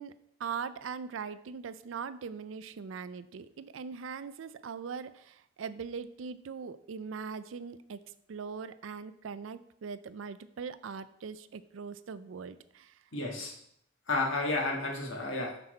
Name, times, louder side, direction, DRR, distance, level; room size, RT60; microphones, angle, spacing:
voice 1, 0.0-8.0 8.3-13.0, right 5 dB, 90° right, 14 dB, 0.4 m, -41 dB
voice 2, 13.1-13.5 14.1-15.6, left 2 dB, 85° left, 0 dB, 1.6 m, -31 dB
6.0 x 6.0 x 4.3 m, 0.72 s
head